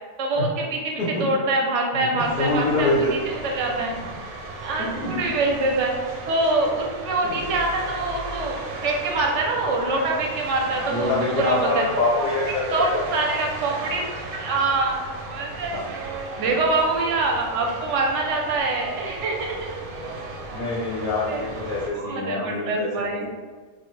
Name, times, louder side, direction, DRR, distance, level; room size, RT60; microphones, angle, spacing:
voice 1, 0.2-3.9 4.6-6.0 6.3-11.8 12.2-12.3 12.7-14.0 14.4-15.0 15.3-16.1 16.4-19.6 21.3-21.4 21.9-23.3, right 2 dB, 65° right, 0 dB, 0.9 m, -25 dB
voice 2, 1.9-3.1 4.8-5.3 7.2-7.4 10.9-13.2 15.7-15.8 20.5-23.3, left 2 dB, 50° left, -7 dB, 0.6 m, -25 dB
sound 1, 2.2-21.9, right 2 dB, 90° right, 1.0 m, -35 dB
3.3 x 2.1 x 3.1 m, 1.4 s
omnidirectional pair, 1.5 m